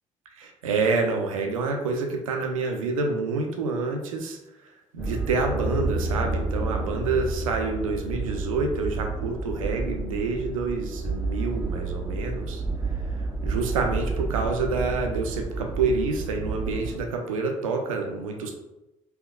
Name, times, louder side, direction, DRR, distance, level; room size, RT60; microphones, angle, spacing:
voice 1, 0.4-4.4 4.9-12.6 13.4-18.5, right 4 dB, 75° right, 3 dB, 0.4 m, -27 dB
sound 1, 5.0-17.0, right 3 dB, 5° right, 0.6 m, -30 dB
3.4 x 2.8 x 2.3 m, 0.95 s
figure-of-eight pair, 45°, 17 cm